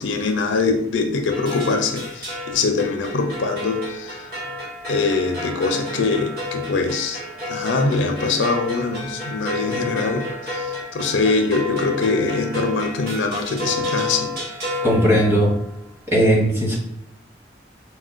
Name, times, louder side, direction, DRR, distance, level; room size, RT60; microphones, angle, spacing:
voice 1, 0.0-4.2 4.9-7.2 7.5-14.3, left 3 dB, 85° left, 5 dB, 0.4 m, -23 dB
sound 1, 1.3-15.7, left 2 dB, 55° right, 1.2 m, -30 dB
voice 2, 14.8-15.5 16.1-16.8, equal, 15° right, -4 dB, 0.8 m, -17 dB
4.2 x 2.1 x 2.5 m, 0.75 s
head